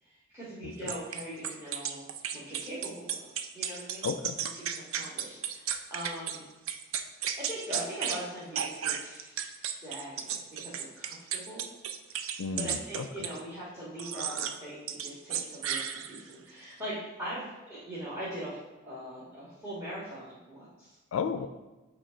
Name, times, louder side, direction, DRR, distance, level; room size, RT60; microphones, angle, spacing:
voice 1, 0.0-4.1 4.5-6.5 7.4-9.3 9.8-11.7 12.1-21.0, equal, 15° right, -9 dB, 1.5 m, -41 dB
sound 1, 0.9-6.4 6.7-8.2 8.5-13.4 14.0-14.6 14.9-16.3, right 8 dB, 85° right, 0.5 m, -34 dB
voice 2, 4.0-4.4 12.4-13.3 21.1-21.5, left 6 dB, 85° left, 9 dB, 0.3 m, -33 dB
8.3 x 3.3 x 3.8 m, 1.2 s
head